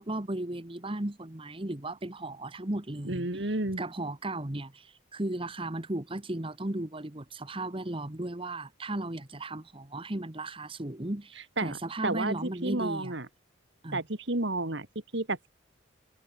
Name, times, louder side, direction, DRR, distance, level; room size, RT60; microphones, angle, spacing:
voice 1, 0.0-3.5 3.8-13.1 13.8-14.0, right 1 dB, 25° right, 1.3 m, -35 dB
voice 2, 3.0-3.8 11.6-13.3 13.9-14.9 15.1-15.5, right 2 dB, 55° right, 2.1 m, -31 dB
head